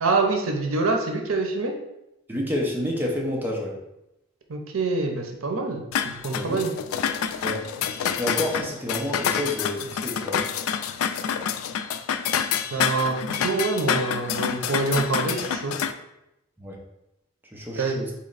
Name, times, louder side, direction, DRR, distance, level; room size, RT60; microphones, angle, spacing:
voice 1, 0.0-1.7 4.5-6.7 12.7-15.7 17.8-18.0, right 3 dB, 80° right, 3 dB, 0.7 m, -26 dB
voice 2, 2.3-3.8 6.3-6.6 7.4-7.6 8.2-10.4 16.6-16.8 17.5-18.1, left 1 dB, 10° right, -2 dB, 0.7 m, -29 dB
sound 1, 5.9-15.9, left 8 dB, 85° left, 0.3 m, -27 dB
4.1 x 3.2 x 3.9 m, 0.89 s
head